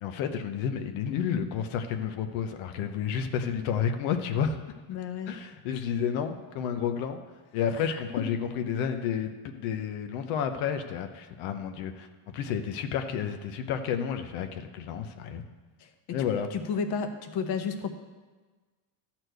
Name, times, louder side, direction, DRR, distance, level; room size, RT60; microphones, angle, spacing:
voice 1, 0.0-4.6 5.3-7.2 7.5-12.1 12.3-15.4 16.1-16.5, left 7 dB, 80° left, 7 dB, 1.0 m, -31 dB
voice 2, 4.9-5.3 7.8-8.0 16.1-17.9, left 6 dB, 55° left, 7 dB, 1.1 m, -32 dB
13.0 x 4.4 x 7.9 m, 1.3 s
cardioid pair, 150°, 47 cm